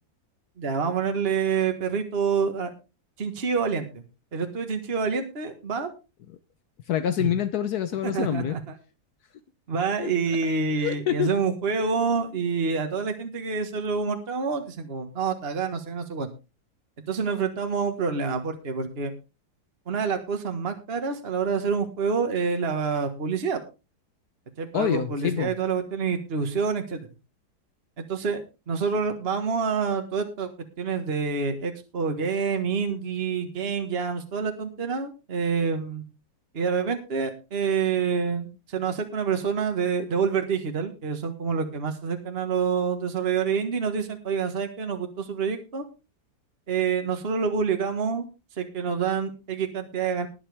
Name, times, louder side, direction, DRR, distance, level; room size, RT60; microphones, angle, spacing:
voice 1, 0.6-2.7 3.2-4.0 4.3-5.9 7.2-7.3 8.0-8.7 9.7-16.3 17.1-19.1 19.9-23.6 24.6-27.0 28.0-28.4 28.7-30.5 30.8-36.0 36.5-45.8 46.7-48.3 48.6-50.3, right 5 dB, 40° right, 6 dB, 1.7 m, -27 dB
voice 2, 6.9-8.6 10.0-10.1 10.4-10.5 10.8-11.3 24.7-25.5, left 9 dB, 70° left, 11 dB, 1.3 m, -26 dB
20.0 x 7.3 x 3.4 m, 0.29 s
omnidirectional pair, 1.7 m